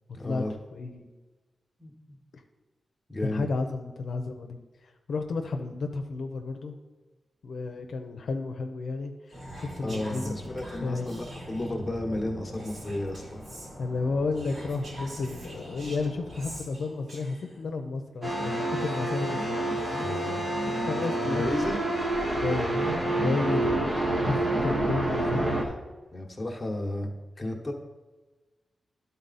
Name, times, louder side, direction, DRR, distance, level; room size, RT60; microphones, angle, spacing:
voice 1, 0.1-0.5 1.8-2.2 3.1-3.4 9.8-13.4 20.0-20.4 21.1-21.8 26.1-27.1 27.4-27.7, left 1 dB, 20° left, 0 dB, 1.2 m, -33 dB
voice 2, 0.7-1.1 2.3-2.4 3.2-4.6 5.1-6.7 7.4-10.3 10.8-11.3 13.8-19.7 20.9-21.5 22.4-22.8 23.1-25.8, left 3 dB, 70° left, 4 dB, 0.6 m, -32 dB
sound 1, 9.3-16.6, equal, 20° right, 1.4 m, -43 dB
Whispering, 9.3-11.8 12.5-13.7 14.3-17.6, right 1 dB, 65° right, 2.8 m, -47 dB
sound 2, 18.2-25.6, right 1 dB, 40° right, 1.1 m, -28 dB
11.5 x 4.1 x 4.1 m, 1.2 s
wide cardioid pair, 100°, 0 cm